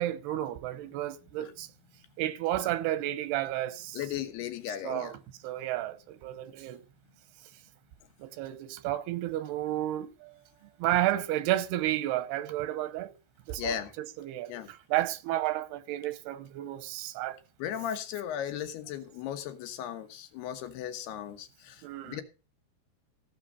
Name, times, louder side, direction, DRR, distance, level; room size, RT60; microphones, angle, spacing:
voice 1, 0.0-1.7 2.2-4.0 4.8-6.8 8.2-10.3 10.8-13.1 13.5-17.4 21.8-22.2, right 14 dB, 90° right, 2.9 m, -32 dB
voice 2, 3.9-5.1 13.6-13.9 14.5-14.7 17.6-22.2, left 10 dB, 85° left, 3.3 m, -36 dB
15.5 x 6.4 x 5.5 m
omnidirectional pair, 4.5 m